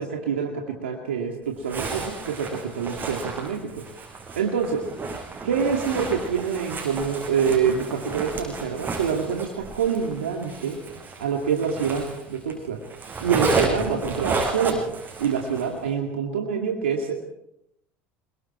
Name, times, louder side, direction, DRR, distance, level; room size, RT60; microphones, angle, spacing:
voice 1, 0.0-3.8 4.4-4.8 5.4-10.8 11.2-12.8 13.2-14.9 15.2-17.3, right 6 dB, 90° right, 1 dB, 2.4 m, -26 dB
Zipper (clothing), 1.6-12.5 12.8-15.8, right 3 dB, 30° right, 6.6 m, -32 dB
26.0 x 22.5 x 4.5 m, 0.79 s
hypercardioid pair, 80°, 6 cm